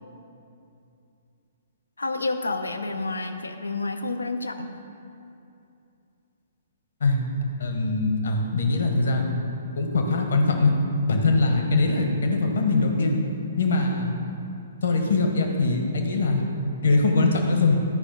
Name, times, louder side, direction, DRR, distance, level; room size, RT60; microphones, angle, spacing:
voice 1, 2.0-4.7, left 3 dB, 75° left, 7 dB, 0.6 m, -29 dB
voice 2, 7.6-9.3 9.8-10.7 11.1-13.2 13.6-14.1 14.8-16.4 16.8-17.8, left 3 dB, 60° left, 3 dB, 1.2 m, -22 dB
12.5 x 5.2 x 5.2 m, 2.7 s
figure-of-eight pair, 120°, 0 cm